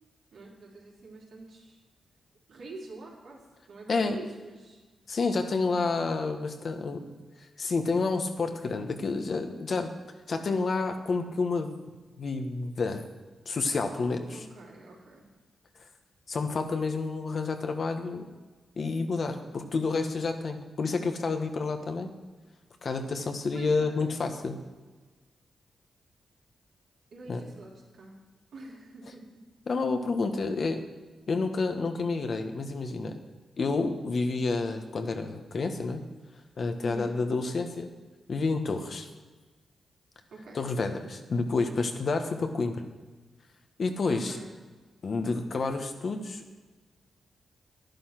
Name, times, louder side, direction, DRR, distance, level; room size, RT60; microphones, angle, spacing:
voice 1, 0.3-1.8 2.5-3.4 3.7-4.8 14.3-15.3 23.5-24.2 27.1-28.2 28.5-29.3 36.8-37.1 40.3-40.6 44.1-44.5, right 2 dB, 80° right, -4 dB, 3.9 m, -45 dB
voice 2, 5.1-7.0 7.6-9.9 10.3-11.8 12.2-13.1 13.4-14.4 16.3-18.2 18.8-22.1 22.8-24.6 27.3-27.4 29.7-30.8 31.3-33.1 33.6-36.0 36.6-37.9 38.3-39.1 40.5-42.8 43.8-44.4 45.0-46.4, left 3 dB, 60° left, 6 dB, 1.5 m, -29 dB
11.5 x 10.5 x 6.1 m, 1.3 s
cardioid pair, 65°, 0 cm